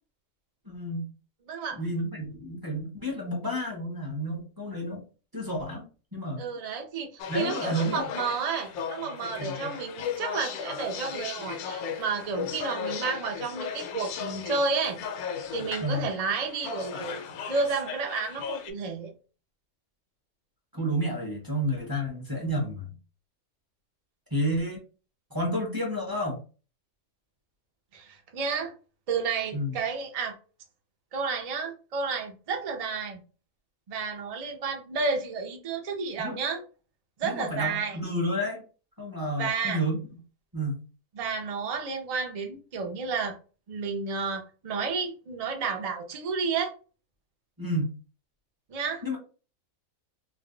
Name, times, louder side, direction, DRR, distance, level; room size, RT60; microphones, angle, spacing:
voice 1, 0.7-1.0 1.7-5.0 5.3-6.4 7.3-8.0 9.4-9.7 15.8-16.1 20.7-22.9 24.3-24.8 25.3-26.4 29.5-29.8 36.2-36.4 37.2-38.6 39.0-40.0 40.5-40.8 47.6-47.9 49.0-49.2, equal, 20° right, 0.6 m, -30 dB
voice 2, 1.5-1.8 6.4-15.0 15.5-19.1 27.9-28.7 29.1-30.4 31.1-33.2 33.9-36.6 37.2-38.0 39.4-39.8 41.1-43.4 43.7-46.7 48.7-49.0, right 4 dB, 70° right, 0.3 m, -31 dB
sound 1, 7.2-18.7, left 7 dB, 85° left, 1.0 m, -36 dB
2.5 x 2.1 x 3.7 m
omnidirectional pair, 1.5 m